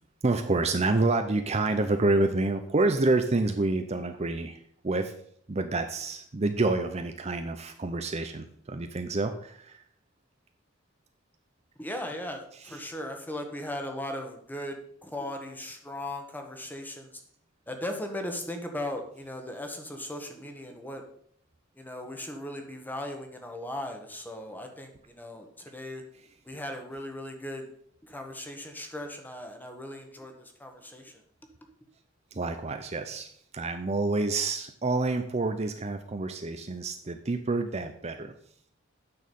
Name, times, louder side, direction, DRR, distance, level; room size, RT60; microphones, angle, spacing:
voice 1, 0.2-5.1 5.5-9.8 12.6-12.8 32.3-38.3, right 2 dB, 35° right, 7 dB, 0.6 m, -28 dB
voice 2, 11.8-17.2 17.7-21.0 21.8-26.0 26.4-27.7 28.0-31.2, left 1 dB, 10° left, 4 dB, 1.3 m, -38 dB
9.2 x 6.3 x 5.4 m, 0.64 s
head